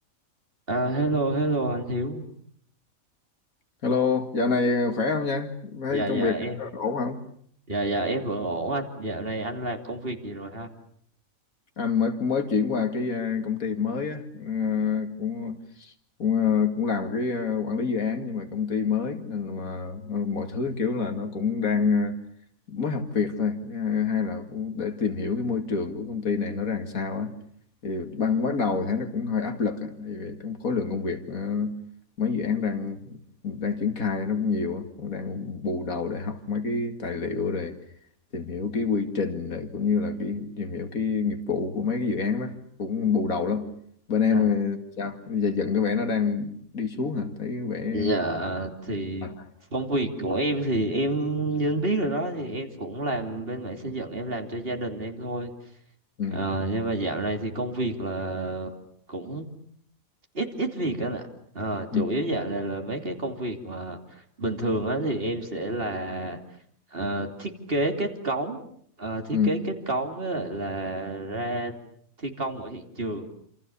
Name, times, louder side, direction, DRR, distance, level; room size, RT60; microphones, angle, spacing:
voice 1, 0.7-2.2 5.9-6.6 7.7-10.7 44.3-44.5 47.9-49.3 49.7-55.5 56.3-58.7 59.1-59.5 60.3-61.3 61.5-66.4 66.9-68.6 69.0-71.7 72.2-73.3, right 2 dB, 40° right, 3.1 m, -29 dB
voice 2, 3.8-7.2 11.8-15.9 16.2-22.2 22.7-27.3 27.8-31.8 32.2-37.8 38.3-43.7 44.1-48.1 48.9-49.3 56.2-56.5 61.9-62.1 69.3-69.5, left 5 dB, 80° left, 2.6 m, -27 dB
28.5 x 27.5 x 7.0 m
omnidirectional pair, 1.5 m